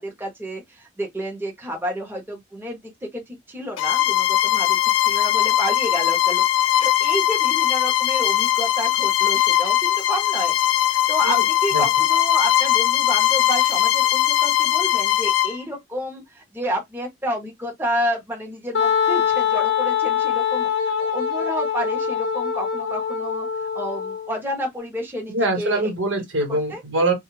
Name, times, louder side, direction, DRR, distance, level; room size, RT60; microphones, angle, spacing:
voice 1, 0.0-10.5 10.9-25.9 26.5-26.8, equal, 10° right, 0.8 m, -30 dB
Bowed string instrument, 3.8-15.6, left 13 dB, 90° left, 0.3 m, -20 dB
Wind instrument woodwind instrument, 18.7-24.4, left 7 dB, 65° left, 0.8 m, -23 dB
voice 2, 25.3-27.1, right 2 dB, 85° right, 1.1 m, -23 dB
2.2 x 2.1 x 3.0 m
head